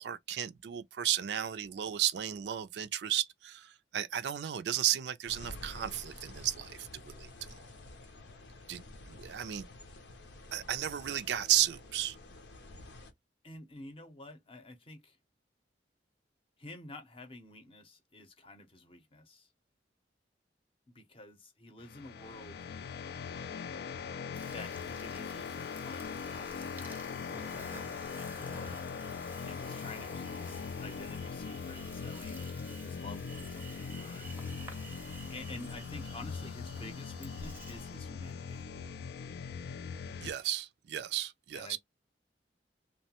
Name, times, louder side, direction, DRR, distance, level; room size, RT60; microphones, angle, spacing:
voice 1, 0.0-7.6 8.7-9.7 10.5-12.2 40.2-41.8, right 11 dB, 70° right, 0.4 m, -34 dB
sound 1, 5.3-13.1, left 2 dB, 90° left, 0.7 m, -50 dB
voice 2, 13.4-15.2 16.6-19.5 20.9-22.6 24.3-28.8 29.4-32.5 32.8-34.3 35.3-38.7 41.5-41.8, left 2 dB, 30° left, 0.6 m, -50 dB
sound 2, 21.8-40.3, left 6 dB, 60° left, 0.3 m, -41 dB
Insect, 24.3-37.9, right 2 dB, 10° right, 0.6 m, -51 dB
2.9 x 2.1 x 2.8 m
head